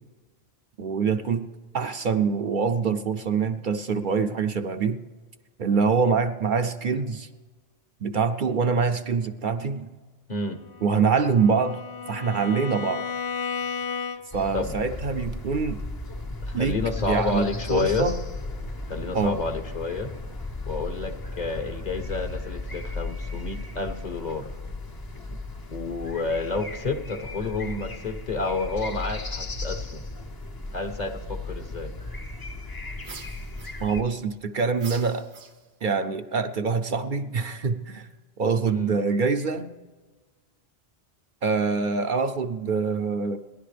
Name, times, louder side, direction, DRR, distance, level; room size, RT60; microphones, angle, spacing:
voice 1, 0.8-1.5 1.7-5.0 5.6-7.3 8.0-9.9 10.8-11.8 12.1-13.1 14.3-15.8 16.5-16.8 17.1-18.2 19.1-19.4 33.8-35.3 35.8-38.1 38.4-39.7 41.4-43.4, right 5 dB, 60° right, 8 dB, 0.7 m, -25 dB
Bowed string instrument, 10.7-14.5, left 6 dB, 65° left, 0.8 m, -34 dB
sound 1, 14.3-34.0, left 2 dB, 25° left, 0.7 m, -35 dB
voice 2, 16.5-18.1 18.9-20.1 20.7-24.5 25.7-30.0 30.7-31.9 38.7-39.0, left 3 dB, 45° left, 7 dB, 1.2 m, -30 dB
sound 2, 33.0-34.2 34.8-35.9, right 5 dB, 85° right, 1.2 m, -44 dB
30.0 x 11.0 x 3.4 m, 1.3 s
omnidirectional pair, 1.0 m